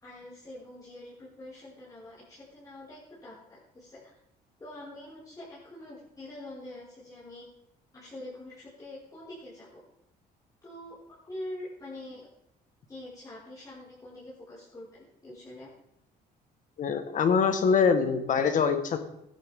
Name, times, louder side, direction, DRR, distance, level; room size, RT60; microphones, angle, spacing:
voice 1, 0.0-4.1 4.6-7.4 7.9-9.8 10.6-11.0 11.2-12.2 12.9-15.7, left 1 dB, 20° left, -11 dB, 5.6 m, -45 dB
voice 2, 16.8-19.0, left 6 dB, 50° left, 8 dB, 1.7 m, -24 dB
16.5 x 11.5 x 3.8 m, 0.79 s
cardioid pair, 110°, 17 cm